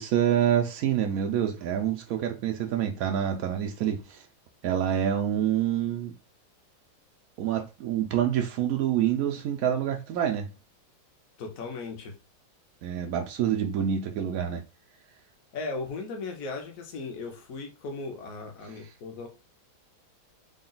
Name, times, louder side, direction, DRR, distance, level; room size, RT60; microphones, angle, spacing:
voice 1, 0.0-4.2 4.6-6.1 7.4-10.5 12.8-14.6, right 10 dB, 85° right, 0.7 m, -27 dB
voice 2, 11.4-12.1 15.5-19.3, left 3 dB, 55° left, 1.1 m, -37 dB
3.8 x 2.2 x 3.9 m
omnidirectional pair, 2.1 m